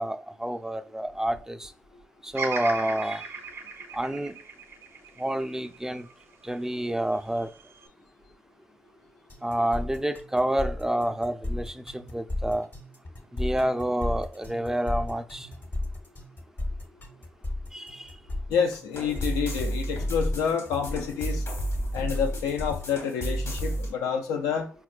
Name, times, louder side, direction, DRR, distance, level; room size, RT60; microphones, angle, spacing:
voice 1, 0.0-1.7 2.2-3.2 3.9-4.3 5.2-6.1 6.4-7.5 9.4-12.7 13.3-15.5 17.7-18.1, right 1 dB, 10° right, 0.3 m, -28 dB
Bird vocalization bird call bird song, 2.3-6.6 7.1-7.9, right 4 dB, 55° right, 0.6 m, -37 dB
sound 1, 9.3-22.9, left 2 dB, 40° left, 0.7 m, -35 dB
voice 2, 18.5-21.4 21.9-24.7, left 6 dB, 90° left, 0.4 m, -28 dB
sound 2, 18.9-23.9, equal, 60° left, 1.1 m, -31 dB
4.2 x 2.3 x 2.3 m
supercardioid pair, 50°, 5 cm